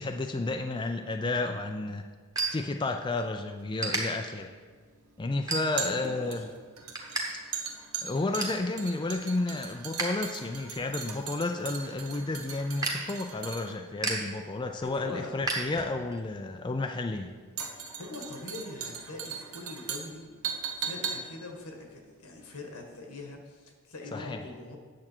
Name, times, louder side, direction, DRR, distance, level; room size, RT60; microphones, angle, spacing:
voice 1, 0.0-2.0 2.5-4.5 5.2-6.4 8.0-17.3 24.1-24.4, left 2 dB, 20° left, 5 dB, 0.4 m, -31 dB
sound 1, 1.2-3.3 3.6-4.0 4.6-4.8 5.3-6.0 6.4-7.2 7.5-7.6 8.0-8.6 9.1-10.1 10.4-16.2, right 3 dB, 15° right, 1.2 m, -35 dB
sound 2, 3.6-22.9 23.2-23.3, right 6 dB, 75° right, 1.0 m, -40 dB
voice 2, 5.8-6.5 14.8-15.4 18.0-20.2 20.7-24.8, left 2 dB, 85° left, 2 dB, 1.5 m, -42 dB
8.7 x 7.2 x 4.5 m, 1.6 s
head